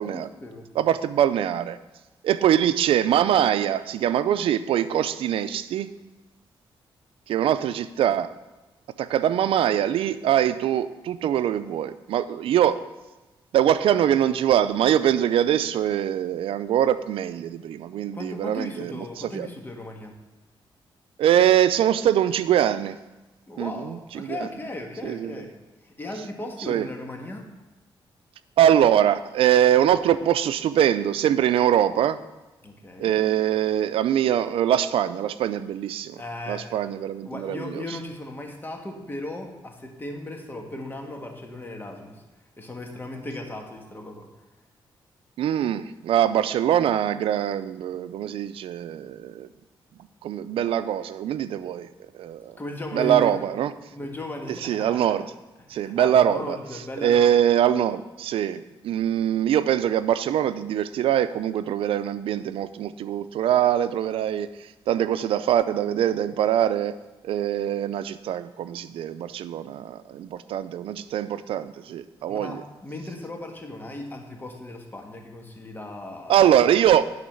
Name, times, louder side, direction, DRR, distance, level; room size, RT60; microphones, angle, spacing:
voice 1, 0.0-0.7 18.1-20.1 23.5-25.5 25.8-27.5 32.6-33.2 36.2-36.7 37.2-42.2 42.6-44.3 52.6-53.3 53.9-55.2 55.7-57.4 72.3-76.5, left 1 dB, 20° left, 2 dB, 1.6 m, -36 dB
voice 2, 0.8-1.8 2.2-5.9 7.3-8.3 9.0-12.8 13.5-19.0 19.3-19.5 21.2-23.0 23.6-24.4 25.0-25.5 26.7-26.9 28.6-32.2 33.0-36.2 36.5-37.8 45.4-49.5 50.2-51.9 52.1-52.5 52.9-53.7 54.6-55.3 55.7-56.6 57.0-64.5 64.9-66.9 67.2-72.6 76.3-77.0, right 10 dB, 85° right, 13 dB, 0.5 m, -23 dB
10.5 x 4.0 x 7.6 m, 1.1 s
cardioid pair, 95°, 9 cm